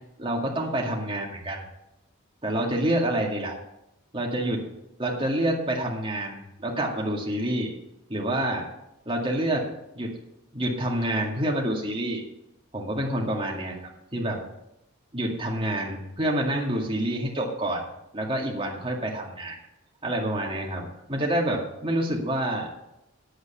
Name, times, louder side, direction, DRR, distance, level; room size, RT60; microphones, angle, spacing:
voice 1, 0.2-1.6 2.4-3.6 4.1-4.7 5.0-7.7 8.1-8.7 9.1-9.7 9.9-10.1 10.5-12.2 12.7-14.4 15.1-17.8 18.1-19.6 20.0-22.8, right 1 dB, 25° right, -2 dB, 2.2 m, -27 dB
9.5 x 8.2 x 6.9 m, 0.86 s
head